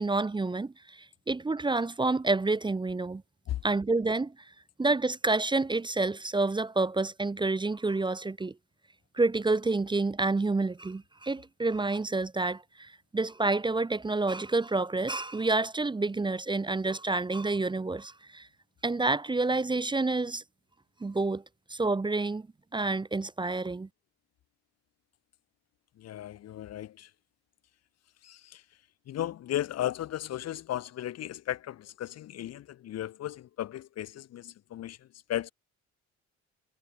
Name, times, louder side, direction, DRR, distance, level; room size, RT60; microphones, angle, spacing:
voice 1, 0.0-3.2 3.6-4.3 4.8-8.5 9.1-18.5 18.8-20.4 21.0-21.4 21.7-22.5 22.7-23.9, right 3 dB, 15° right, 0.6 m, -28 dB
voice 2, 26.0-27.1 28.2-28.6 29.1-35.5, left 12 dB, 60° left, 0.7 m, -36 dB
cardioid pair, 90°, 30 cm